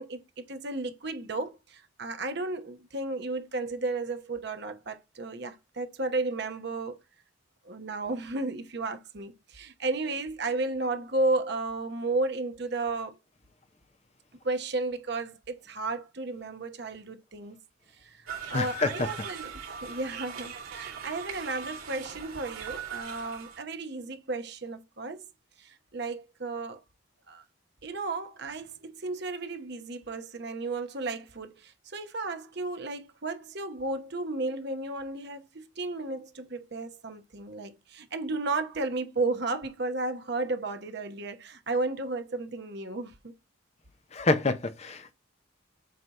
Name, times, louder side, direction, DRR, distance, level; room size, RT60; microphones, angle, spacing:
voice 1, 0.0-7.0 7.6-13.2 14.4-17.6 18.0-19.5 19.8-25.2 25.6-26.8 27.3-27.4 27.8-43.3, right 3 dB, 50° right, 0.9 m, -33 dB
sound 1, 18.3-23.6, right 6 dB, 80° right, 2.8 m, -40 dB
voice 2, 18.5-19.1 44.1-45.1, left 3 dB, 30° left, 0.6 m, -27 dB
7.6 x 2.8 x 4.6 m
head